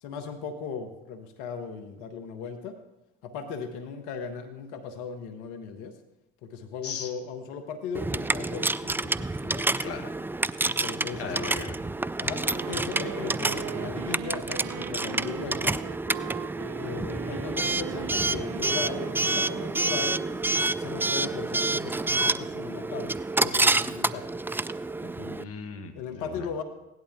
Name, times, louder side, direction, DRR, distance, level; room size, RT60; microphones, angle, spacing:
voice 1, 0.0-2.8 3.2-6.0 6.4-9.7 10.6-11.3 12.2-15.8 16.8-20.2 20.6-24.3 25.0-25.5 25.9-26.6, left 6 dB, 80° left, 6 dB, 1.4 m, -37 dB
Coin (dropping) / Alarm, 7.9-25.4, right 2 dB, 5° right, 0.3 m, -28 dB
voice 2, 9.8-10.1 11.2-11.8 25.4-26.5, left 6 dB, 50° left, 5 dB, 1.9 m, -37 dB
Wind instrument woodwind instrument, 12.4-21.0, right 13 dB, 70° right, 0.7 m, -40 dB
17.0 x 11.0 x 3.7 m, 0.94 s
hypercardioid pair, 60°, 30 cm